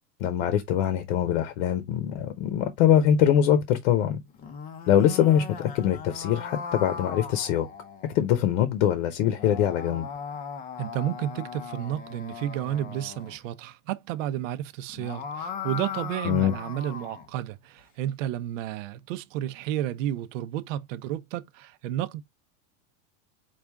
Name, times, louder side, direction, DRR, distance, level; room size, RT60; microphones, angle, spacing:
voice 1, 0.2-4.2 4.9-7.7 8.1-10.1 16.2-16.5, left 10 dB, 60° left, 0.9 m, -23 dB
sound 1, 4.3-8.2 9.2-13.4 14.8-17.3, left 6 dB, 20° left, 0.5 m, -38 dB
voice 2, 10.8-22.2, right 12 dB, 70° right, 0.7 m, -31 dB
4.8 x 2.5 x 3.3 m
supercardioid pair, 150°, 40 cm